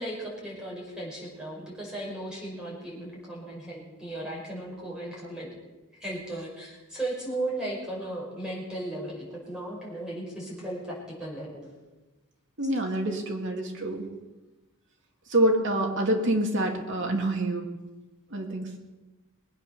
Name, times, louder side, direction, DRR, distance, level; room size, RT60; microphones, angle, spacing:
voice 1, 0.0-5.5 6.0-11.7, right 1 dB, 5° right, -5 dB, 5.3 m, -36 dB
voice 2, 12.6-14.1 15.3-17.7 18.3-18.7, right 1 dB, 60° right, 2 dB, 2.3 m, -26 dB
21.0 x 9.0 x 6.7 m, 1.1 s
head